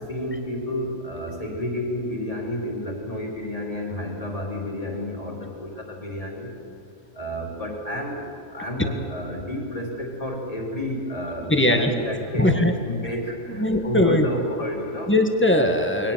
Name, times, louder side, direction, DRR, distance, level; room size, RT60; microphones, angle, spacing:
voice 1, 0.1-6.5 7.1-15.1, left 1 dB, 25° left, 0 dB, 3.8 m, -30 dB
voice 2, 11.5-11.9 12.4-12.7 13.6-14.2 15.1-16.1, left 1 dB, 10° left, 5 dB, 1.6 m, -20 dB
22.0 x 18.0 x 7.4 m, 3.0 s
omnidirectional pair, 1.4 m